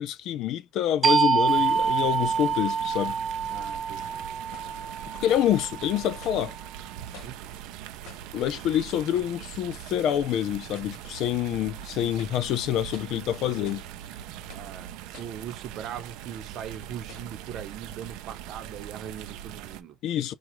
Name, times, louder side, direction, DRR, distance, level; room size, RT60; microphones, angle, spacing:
voice 1, 0.0-3.2 5.2-6.6 8.3-13.8 20.0-20.3, left 11 dB, 60° left, 0.5 m, -27 dB
sound 1, 1.0-6.3, right 6 dB, 25° right, 0.4 m, -26 dB
sound 2, 1.5-19.8, right 11 dB, 85° right, 0.5 m, -41 dB
voice 2, 3.5-4.2 7.2-7.5 14.5-20.0, right 9 dB, 55° right, 0.8 m, -40 dB
sound 3, 4.5-4.8 5.3-5.6 6.2-6.5 7.1-7.5 8.1-8.4 9.2-9.4 10.0-10.2 10.7-11.0 11.5-11.6 12.1-12.5 12.9-13.2 13.7-13.9 14.5-14.8 15.1-15.5 16.2-16.3 17.1-17.4, left 8 dB, 75° left, 1.1 m, -50 dB
4.8 x 2.4 x 3.1 m
cardioid pair, 150°, 0 cm